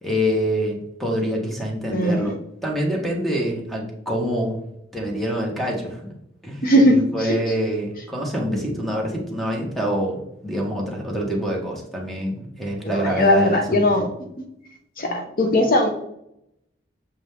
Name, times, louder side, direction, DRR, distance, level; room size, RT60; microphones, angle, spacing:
voice 1, 0.0-4.6 4.9-6.1 6.4-6.7 6.9-13.9, equal, ahead, -1 dB, 1.5 m, -26 dB
voice 2, 6.6-7.4 12.8-14.1 15.0-15.9, left 1 dB, 50° left, 3 dB, 0.9 m, -19 dB
7.2 x 5.0 x 3.6 m, 0.78 s
head